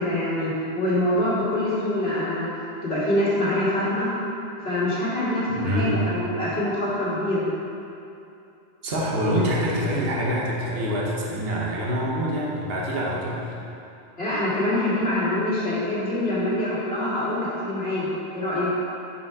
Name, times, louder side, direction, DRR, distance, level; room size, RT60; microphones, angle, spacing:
voice 1, 0.0-2.5 2.8-4.1 4.6-7.4 14.2-18.1 18.3-18.7, left 1 dB, 75° left, -10 dB, 2.1 m, -25 dB
voice 2, 5.5-6.0 8.8-13.5, equal, 70° right, -4 dB, 1.2 m, -25 dB
5.8 x 5.2 x 4.7 m, 2.7 s
omnidirectional pair, 1.1 m